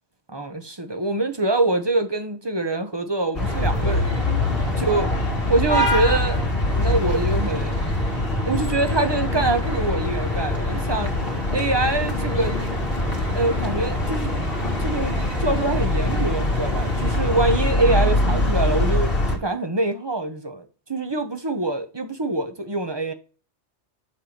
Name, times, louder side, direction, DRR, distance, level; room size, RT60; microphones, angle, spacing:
voice 1, 0.3-4.2 4.9-5.1 5.5-6.5 6.8-7.9 8.4-11.2 11.5-12.6 13.3-14.3 14.8-15.1 15.4-23.1, right 2 dB, 25° right, 0.9 m, -24 dB
sound 1, 3.3-19.4, left 1 dB, 50° left, 2.3 m, -23 dB
sound 2, 3.4-17.2, right 2 dB, 45° right, 2.0 m, -43 dB
7.4 x 4.7 x 5.1 m
omnidirectional pair, 1.2 m